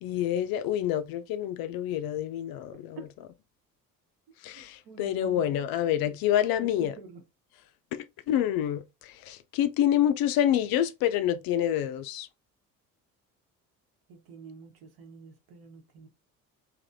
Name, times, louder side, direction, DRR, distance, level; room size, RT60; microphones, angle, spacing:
voice 1, 0.0-3.0 4.4-6.9 7.9-12.3, left 11 dB, 55° left, 0.5 m, -27 dB
voice 2, 4.5-5.4 6.0-6.1 6.6-7.2 14.1-16.1, right 4 dB, 55° right, 1.1 m, -47 dB
3.3 x 2.6 x 2.6 m
hypercardioid pair, 55°, 45 cm